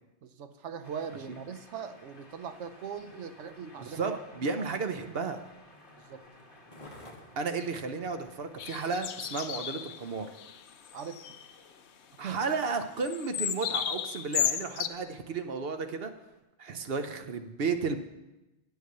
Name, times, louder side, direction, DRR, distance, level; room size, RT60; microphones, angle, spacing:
voice 1, 0.2-4.7 6.1-6.2 10.9-11.2 12.2-12.4, right 7 dB, 85° right, 10 dB, 1.1 m, -40 dB
sound 1, 0.8-16.4, left 1 dB, 50° left, 2.0 m, -58 dB
Skateboard, 1.8-10.6 11.2-11.3, left 1 dB, 30° left, 1.6 m, -57 dB
voice 2, 3.8-5.4 7.4-10.3 12.2-16.1 16.6-18.0, right 4 dB, 60° right, 8 dB, 1.0 m, -33 dB
sound 2, 8.6-10.0 10.4-10.6 10.9-11.5 13.0-14.9, left 10 dB, 75° left, 0.8 m, -33 dB
8.5 x 8.1 x 6.6 m, 1.0 s
omnidirectional pair, 1.2 m